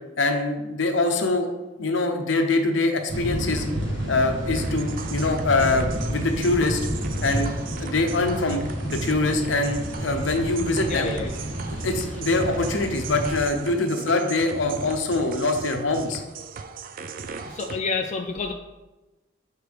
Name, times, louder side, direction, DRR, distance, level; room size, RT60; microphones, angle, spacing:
voice 1, 0.2-1.5 1.8-3.6 4.1-6.8 7.2-7.5 7.8-11.1 11.8-16.2, left 2 dB, 75° left, 5 dB, 0.8 m, -24 dB
sound 1, 3.1-13.4, right 1 dB, 70° right, 1.8 m, -30 dB
sound 2, 4.6-17.8, right 5 dB, 50° right, 0.4 m, -38 dB
voice 2, 10.9-11.4 11.7-11.8 17.5-18.5, left 4 dB, 40° left, 3 dB, 0.4 m, -29 dB
6.6 x 4.5 x 3.4 m, 1.1 s
head